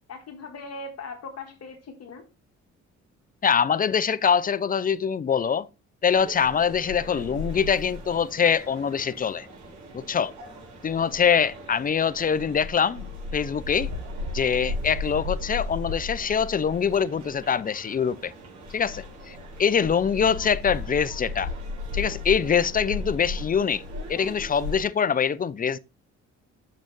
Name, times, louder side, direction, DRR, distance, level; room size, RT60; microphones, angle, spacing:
voice 1, 0.1-2.2, left 3 dB, 60° left, 1.6 m, -39 dB
voice 2, 3.4-5.7 6.0-9.5 9.9-10.3 10.8-13.9 14.3-18.3 18.7-21.5 21.9-23.8 24.1-25.8, left 7 dB, 30° left, 0.5 m, -24 dB
sound 1, 6.1-24.8, left 3 dB, 70° right, 4.4 m, -36 dB
6.5 x 6.3 x 4.0 m
cardioid pair, 90°, 30 cm